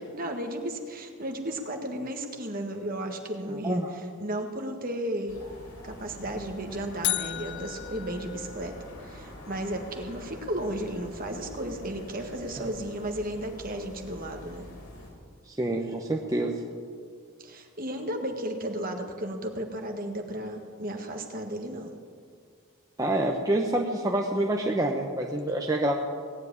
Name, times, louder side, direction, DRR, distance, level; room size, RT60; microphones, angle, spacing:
voice 1, 0.1-5.4 5.8-8.8 9.0-14.6 17.4-21.9, right 1 dB, 40° right, 4 dB, 1.6 m, -34 dB
voice 2, 3.5-3.9 15.5-16.6 23.0-26.0, right 1 dB, 15° right, 0 dB, 0.9 m, -27 dB
sound 1, 5.3-15.1, left 1 dB, 85° left, 4.3 m, -45 dB
sound 2, 7.0-9.2, left 16 dB, 50° left, 0.4 m, -34 dB
17.5 x 7.8 x 9.6 m, 2.1 s
head